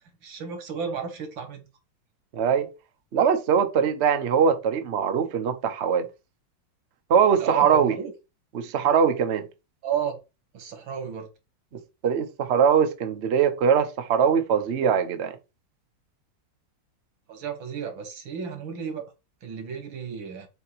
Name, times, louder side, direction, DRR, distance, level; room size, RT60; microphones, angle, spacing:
voice 1, 0.2-1.7 7.4-8.1 9.8-10.2 10.5-11.3 17.3-19.1 19.4-20.5, right 7 dB, 85° right, 2.2 m, -33 dB
voice 2, 2.3-2.7 3.1-6.1 7.1-8.0 8.5-9.5 12.0-15.4, right 7 dB, 50° right, 0.9 m, -22 dB
7.7 x 2.9 x 4.8 m
omnidirectional pair, 2.0 m